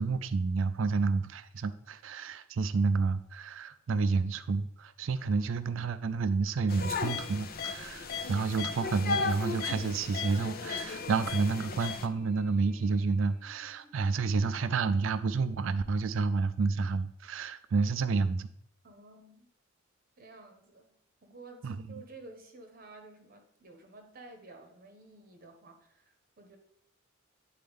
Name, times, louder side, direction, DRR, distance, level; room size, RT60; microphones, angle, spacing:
voice 1, 0.0-18.5 21.6-22.0, right 4 dB, 70° right, 13 dB, 0.4 m, -30 dB
sound 1, 6.7-12.1, left 5 dB, 45° left, 0.6 m, -35 dB
sound 2, 10.2-15.0, left 1 dB, 15° left, 1.1 m, -58 dB
voice 2, 18.8-19.5 20.2-20.9 21.2-26.6, right 3 dB, 45° right, 4 dB, 0.9 m, -52 dB
9.4 x 4.3 x 3.6 m, 0.70 s
head